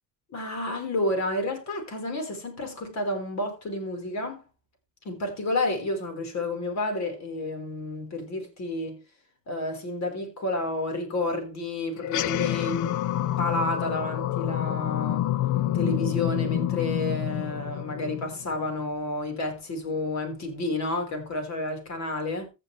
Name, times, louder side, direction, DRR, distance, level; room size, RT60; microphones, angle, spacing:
voice 1, 0.3-4.4 5.1-9.0 9.5-12.9 13.4-15.3 15.7-22.5, left 2 dB, 65° left, 5.2 m, -30 dB
sound 1, 12.0-18.7, left 13 dB, 85° left, 0.7 m, -28 dB
15.5 x 7.0 x 3.5 m
cardioid pair, 90°, 30 cm